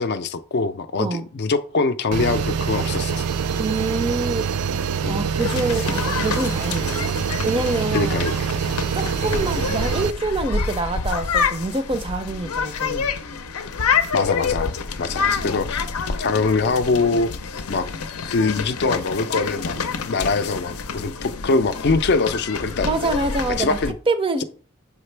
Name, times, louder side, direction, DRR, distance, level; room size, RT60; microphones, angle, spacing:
voice 1, 0.0-3.2 5.0-5.2 7.9-8.5 9.2-9.4 14.1-17.3 17.7-17.9 18.2-23.1 23.6-23.9, left 3 dB, 50° left, 0.4 m, -23 dB
sound 1, 2.1-10.1, right 7 dB, 90° right, 0.4 m, -25 dB
voice 2, 3.6-4.5 5.1-7.1 7.4-8.2 8.9-13.1 15.3-15.6 22.8-23.8 24.1-24.4, right 3 dB, 25° right, 0.5 m, -26 dB
sound 2, 5.4-23.9, left 5 dB, 90° left, 0.6 m, -27 dB
6.5 x 5.1 x 3.3 m
head